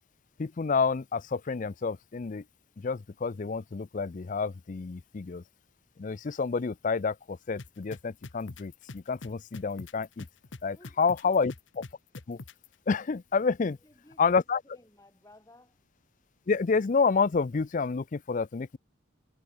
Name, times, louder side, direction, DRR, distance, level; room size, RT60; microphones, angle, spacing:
voice 1, 0.4-2.4 2.8-5.4 6.0-10.3 10.6-11.5 12.3-12.4 12.9-13.8 14.2-14.6 16.5-18.8, left 5 dB, 40° left, 0.4 m, -29 dB
sound 1, 7.6-12.7, left 3 dB, 60° left, 1.1 m, -44 dB
voice 2, 10.7-11.5 13.7-15.8, left 1 dB, 15° left, 6.8 m, -58 dB
head